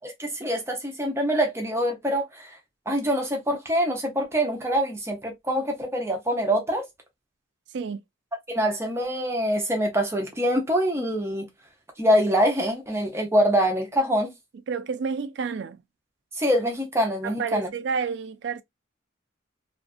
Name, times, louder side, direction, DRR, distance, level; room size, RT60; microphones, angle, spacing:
voice 1, 0.0-2.5 2.9-6.9 8.5-11.5 12.0-14.3 16.4-17.7, equal, 15° right, 0.6 m, -24 dB
voice 2, 14.7-15.8 17.2-18.6, right 5 dB, 65° right, 0.3 m, -30 dB
2.5 x 2.4 x 2.3 m
head